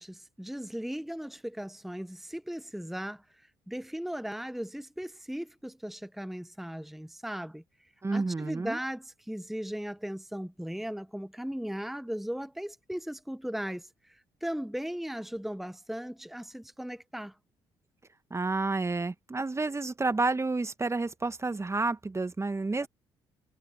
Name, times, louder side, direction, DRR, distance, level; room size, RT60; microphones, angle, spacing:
voice 1, 0.0-3.2 3.7-7.6 8.1-17.3 22.8-22.9, equal, ahead, 1.3 m, -37 dB
voice 2, 8.0-8.8 18.3-22.9, right 3 dB, 20° right, 1.5 m, -30 dB
hypercardioid pair, 50°, 13 cm